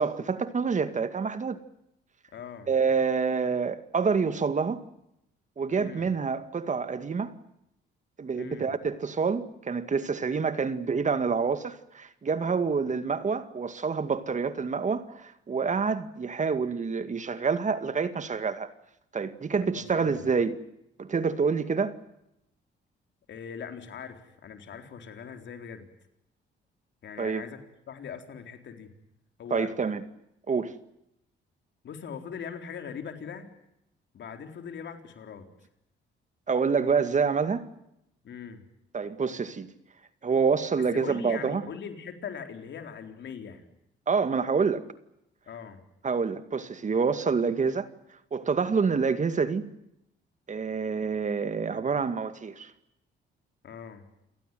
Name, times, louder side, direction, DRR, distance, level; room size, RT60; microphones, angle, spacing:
voice 1, 0.0-1.6 2.7-4.9 5.6-7.3 8.2-18.7 19.1-20.6 21.0-22.0 27.2-27.4 29.5-30.0 30.5-30.8 36.5-37.7 38.9-39.7 40.2-41.7 44.1-44.8 46.0-47.9 48.3-49.7 50.5-52.7, right 5 dB, 40° right, 2.1 m, -27 dB
voice 2, 2.3-2.7 5.7-6.1 8.3-8.7 19.7-20.3 23.3-25.9 27.0-27.6 27.9-28.9 29.4-29.7 31.8-33.5 34.1-35.5 38.2-38.6 40.9-43.6 45.5-45.8 53.6-54.1, left 7 dB, 65° left, 4.0 m, -41 dB
29.0 x 18.0 x 9.2 m
cardioid pair, 90°, 20 cm